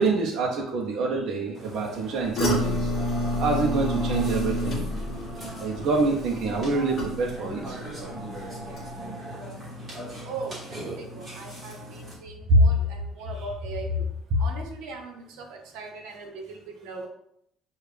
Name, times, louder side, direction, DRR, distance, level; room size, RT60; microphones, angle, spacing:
voice 1, 0.0-2.9 3.4-4.9 5.6-7.8 12.5-12.8 14.3-14.4, right 2 dB, 45° right, -1 dB, 0.6 m, -25 dB
Burping eructation, 1.5-12.1, right 1 dB, 15° right, 1.3 m, -39 dB
sound 1, 2.4-7.6 7.9-8.3 8.7-8.8, left 1 dB, 35° left, 1.2 m, -28 dB
voice 2, 10.2-14.1 14.4-17.1, right 4 dB, 75° right, 2 dB, 0.9 m, -39 dB
6.4 x 2.4 x 3.3 m, 0.72 s
cardioid pair, 175°, 0 cm